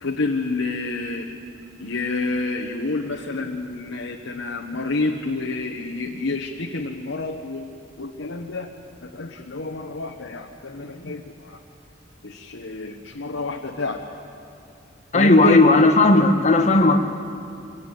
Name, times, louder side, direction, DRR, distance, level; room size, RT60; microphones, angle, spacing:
voice 1, 0.0-1.3 1.8-7.7 8.0-8.7 9.0-11.6 12.2-14.0 15.1-15.6, left 3 dB, 90° left, 1 dB, 1.2 m, -28 dB
voice 2, 15.1-17.0, left 2 dB, 40° left, 6 dB, 1.4 m, -15 dB
23.5 x 18.0 x 8.4 m, 2.7 s
head